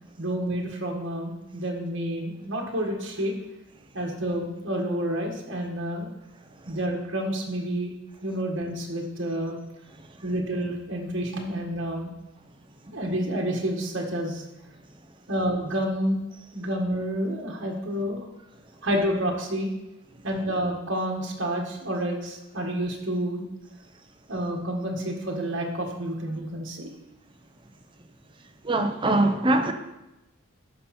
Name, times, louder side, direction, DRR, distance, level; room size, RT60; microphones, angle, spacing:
voice 1, 0.2-3.3 3.9-6.1 6.7-7.9 8.2-9.5 10.2-12.1 12.9-14.4 15.3-16.2 16.5-18.2 18.8-19.7 20.2-23.5 24.3-26.9, right 1 dB, 55° right, 0 dB, 1.7 m, -29 dB
voice 2, 28.6-29.7, right 2 dB, 25° right, 5 dB, 0.7 m, -22 dB
13.5 x 5.5 x 4.3 m, 0.94 s
head